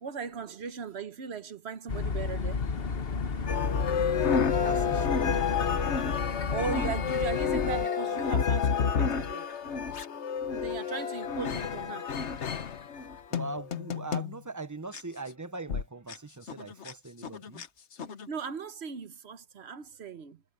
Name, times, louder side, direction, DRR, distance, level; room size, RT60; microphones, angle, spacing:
voice 1, 0.0-2.7 6.5-9.5 10.5-12.1 18.3-20.4, right 6 dB, 65° right, 1.2 m, -38 dB
sound 1, 1.9-7.9, left 5 dB, 55° left, 1.4 m, -32 dB
sound 2, 3.5-14.4 14.9-15.0 15.7-15.8 16.1-16.2 16.5-16.9 17.2-17.7 18.0-18.3, left 6 dB, 75° left, 1.4 m, -30 dB
voice 2, 4.6-5.5 13.3-17.7, right 3 dB, 20° right, 0.7 m, -41 dB
omnidirectional pair, 1.2 m